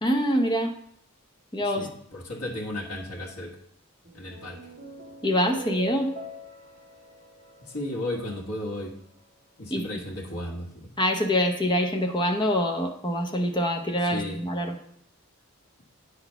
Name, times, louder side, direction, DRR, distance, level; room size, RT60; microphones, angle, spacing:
voice 1, 0.0-0.7 1.5-1.9 5.2-6.2 9.7-9.9 11.0-14.7, equal, 20° left, 3 dB, 0.8 m, -25 dB
voice 2, 1.6-3.6 4.1-4.7 7.6-8.9 9.6-10.9 14.0-14.4, left 1 dB, 85° left, -1 dB, 1.6 m, -34 dB
sound 1, 4.0-8.6, right 1 dB, 40° right, 1.6 m, -42 dB
8.6 x 4.1 x 5.6 m, 0.68 s
head